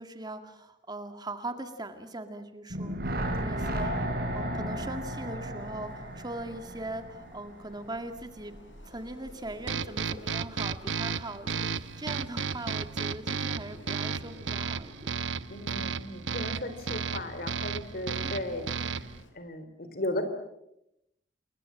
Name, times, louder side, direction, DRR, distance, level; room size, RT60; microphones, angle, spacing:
voice 1, 0.0-3.0 3.3-3.9 4.3-8.5 8.9-15.1 18.2-18.9, right 2 dB, 25° right, 8 dB, 2.0 m, -40 dB
sound 1, 2.7-7.8 8.1-8.2, right 1 dB, 55° right, 4.5 m, -34 dB
voice 2, 3.4-3.7 15.5-20.2, left 1 dB, 55° left, 10 dB, 3.8 m, -36 dB
Wind, 5.6-19.3, left 1 dB, 90° left, 5.6 m, -53 dB
sound 2, 9.7-19.2, right 5 dB, 90° right, 0.9 m, -33 dB
29.5 x 22.0 x 7.5 m, 0.84 s
head